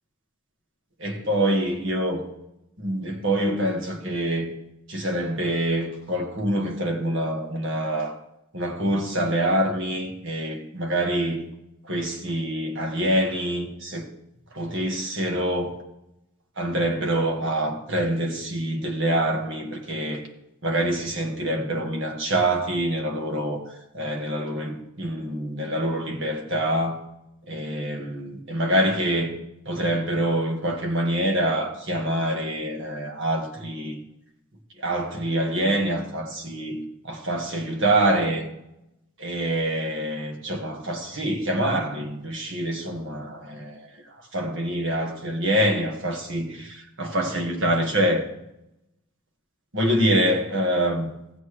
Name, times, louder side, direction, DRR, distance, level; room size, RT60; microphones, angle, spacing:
voice 1, 1.0-2.2 2.8-4.5 4.9-8.1 8.5-11.4 11.8-14.1 14.5-15.7 16.6-20.2 20.6-23.6 23.9-27.0 27.5-29.4 29.6-34.0 34.8-38.5 39.2-43.9 44.3-48.2 49.7-51.1, right 1 dB, 60° right, 1.8 m, -25 dB
15.0 x 8.3 x 3.3 m
head